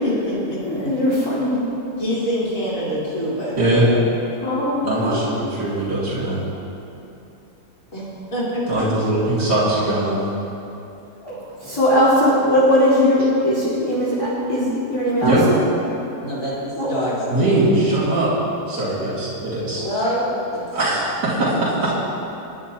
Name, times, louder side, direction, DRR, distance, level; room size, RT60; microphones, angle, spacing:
voice 1, 0.0-0.9 2.0-3.8 7.9-8.0 8.3-8.8 16.2-17.6 19.8-20.6, equal, 50° left, -8 dB, 4.3 m, -25 dB
voice 2, 0.6-1.6 4.4-5.3 11.2-15.6 16.8-16.9, equal, 15° left, -9 dB, 2.3 m, -19 dB
voice 3, 3.6-3.9 4.8-6.4 8.7-10.2 15.2-15.4 17.3-18.3 18.7-19.8 20.7-21.9, right 2 dB, 70° right, -10 dB, 3.2 m, -21 dB
29.0 x 10.0 x 2.9 m, 2.9 s
omnidirectional pair, 1.9 m